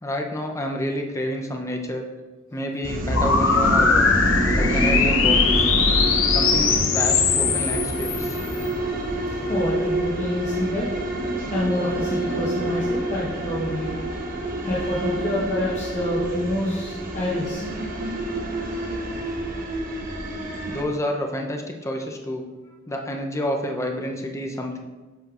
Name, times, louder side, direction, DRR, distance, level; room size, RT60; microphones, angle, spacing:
voice 1, 0.0-2.0 2.5-4.2 4.6-5.7 6.3-8.4 20.7-22.5 22.9-24.8, equal, 15° left, 2 dB, 0.6 m, -29 dB
sound 1, 2.8-20.8, right 1 dB, 45° right, 1.0 m, -27 dB
sound 2, 3.1-8.6, left 5 dB, 70° left, 0.7 m, -21 dB
voice 2, 9.5-10.9 11.5-14.0 14.6-17.6, left 1 dB, 40° left, -6 dB, 1.0 m, -27 dB
8.0 x 6.4 x 2.5 m, 1.2 s
head